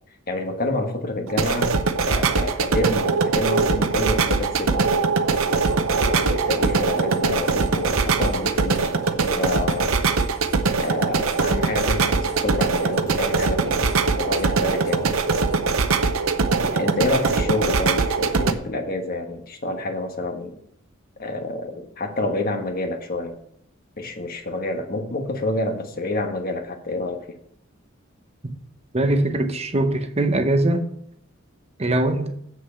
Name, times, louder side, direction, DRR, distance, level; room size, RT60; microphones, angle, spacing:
voice 1, 0.3-1.7 2.1-4.9 6.0-10.0 10.8-15.1 16.6-20.6 21.2-23.4 24.0-27.2, left 2 dB, 45° left, 1.3 m, -28 dB
sound 1, 1.3-18.5, right 4 dB, 80° right, 0.7 m, -22 dB
sound 2, 5.3-15.6, left 1 dB, 15° left, 3.9 m, -43 dB
voice 2, 28.9-30.8 31.8-32.3, right 1 dB, 30° right, 0.8 m, -21 dB
7.8 x 6.7 x 5.6 m
head